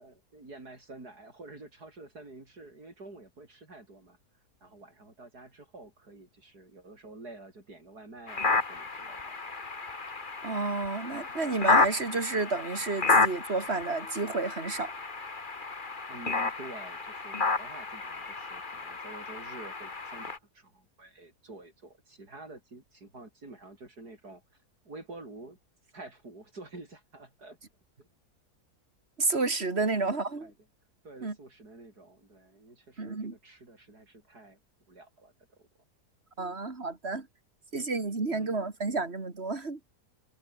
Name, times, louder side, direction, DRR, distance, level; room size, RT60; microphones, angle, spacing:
voice 1, 0.0-4.2 4.6-9.3 16.1-24.4 24.8-25.6 25.9-27.6 28.0-28.1 30.1-30.5 31.0-34.6 34.9-35.7 38.3-38.7, right 2 dB, 80° right, 6.7 m, -49 dB
sound 1, 8.3-20.4, left 3 dB, 30° left, 2.0 m, -31 dB
voice 2, 10.4-14.9 29.2-30.5 31.2-31.3 33.0-33.3 36.4-37.3 37.7-39.8, right 3 dB, 40° right, 3.1 m, -31 dB
omnidirectional pair, 1.6 m